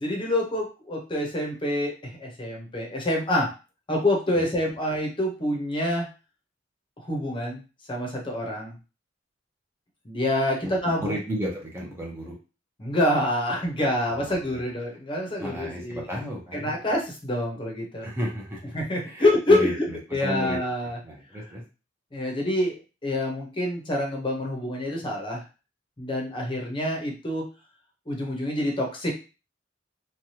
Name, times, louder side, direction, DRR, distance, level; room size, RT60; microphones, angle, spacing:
voice 1, 0.0-3.5 3.9-6.1 7.0-7.6 7.9-8.7 10.0-11.2 12.8-16.0 16.5-18.1 18.7-19.9 20.1-21.0 22.1-25.4 26.0-27.4 28.1-29.1, left 1 dB, 25° left, 0 dB, 0.8 m, -26 dB
voice 2, 11.0-12.4 14.1-14.3 15.4-16.8 18.0-18.6 19.0-19.7 20.2-20.6 21.0-21.6, equal, 15° right, -3 dB, 0.7 m, -32 dB
3.2 x 2.3 x 2.8 m, 0.32 s
head